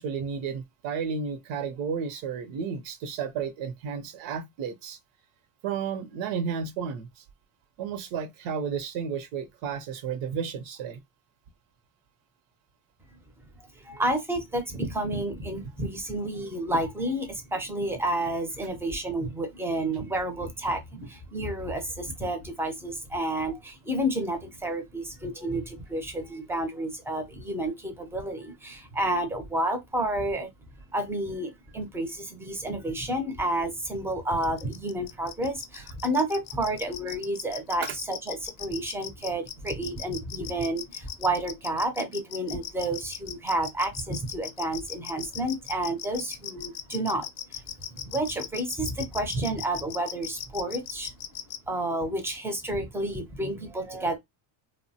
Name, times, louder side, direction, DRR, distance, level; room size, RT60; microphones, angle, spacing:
voice 1, 0.0-5.0 5.6-7.2 7.8-11.0 37.8-38.0, right 6 dB, 80° right, 0.6 m, -32 dB
voice 2, 13.8-30.5 30.9-47.3 47.9-51.1 51.7-54.2, right 1 dB, 5° right, 0.4 m, -30 dB
sound 1, 34.4-51.6, left 12 dB, 90° left, 0.5 m, -37 dB
3.0 x 2.0 x 2.7 m
cardioid pair, 125°, 47 cm